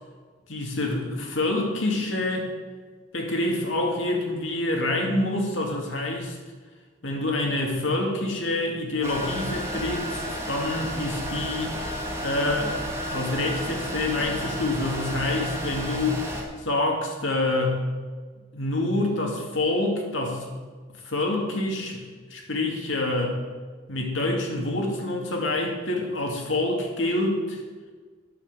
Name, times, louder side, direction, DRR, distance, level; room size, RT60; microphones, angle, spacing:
voice 1, 0.5-2.5 3.1-6.4 7.0-11.8 12.2-16.2 16.6-17.8 18.5-20.5 21.0-23.4 23.9-27.6, left 2 dB, 85° left, 1 dB, 2.3 m, -27 dB
sound 1, 9.0-16.4, equal, 15° right, 2.0 m, -32 dB
9.3 x 7.2 x 8.1 m, 1.4 s
head